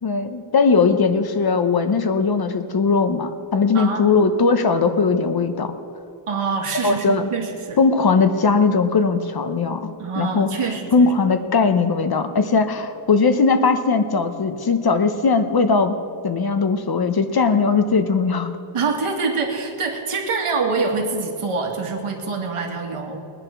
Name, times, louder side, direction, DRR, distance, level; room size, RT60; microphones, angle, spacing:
voice 1, 0.0-5.7 6.8-7.3 7.8-9.9 10.2-16.0 16.2-18.5, left 4 dB, 45° left, 9 dB, 1.0 m, -19 dB
voice 2, 6.3-7.8 10.0-11.1 18.7-23.2, right 4 dB, 85° right, 1 dB, 2.3 m, -25 dB
19.5 x 10.5 x 6.1 m, 2.7 s
wide cardioid pair, 150°, 50 cm